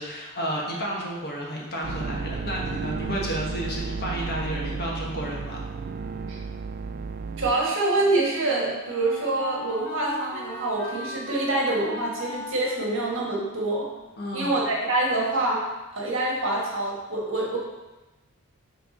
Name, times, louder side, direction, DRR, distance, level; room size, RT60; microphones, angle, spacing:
voice 1, 0.0-5.6 14.2-14.5, equal, 50° left, -3 dB, 1.3 m, -31 dB
sound 1, 1.8-7.5, right 4 dB, 45° right, 0.3 m, -33 dB
Wind instrument woodwind instrument, 7.4-14.7, left 1 dB, 15° left, 2.0 m, -40 dB
voice 2, 7.4-13.9 14.3-15.7 15.9-17.6, right 2 dB, 65° right, -3 dB, 1.6 m, -26 dB
5.9 x 3.6 x 5.1 m, 1.1 s
head